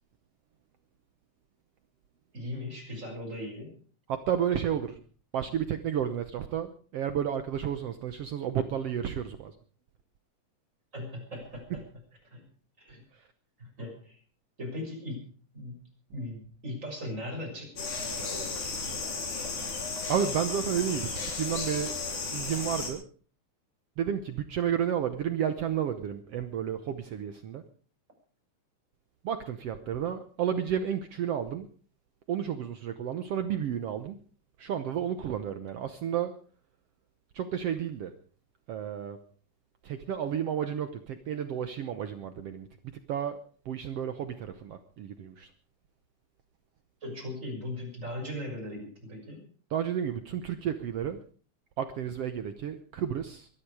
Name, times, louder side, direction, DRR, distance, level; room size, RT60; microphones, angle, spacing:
voice 1, 2.3-3.8 10.9-11.9 12.3-12.5 12.8-13.0 13.6-14.2 14.6-15.8 16.1-19.1 47.0-49.4, left 1 dB, 20° right, 1 dB, 6.6 m, -39 dB
voice 2, 4.1-5.0 5.3-9.5 13.1-13.2 20.1-21.9 22.3-23.0 24.0-27.7 29.2-31.7 32.3-34.2 34.6-36.4 37.3-38.1 38.7-39.2 39.8-45.5 49.7-51.2 51.8-53.5, right 9 dB, 65° right, 9 dB, 1.7 m, -32 dB
sound 1, 17.8-22.9, left 4 dB, 70° left, 4.9 m, -34 dB
23.0 x 12.0 x 4.9 m, 0.42 s
omnidirectional pair, 3.6 m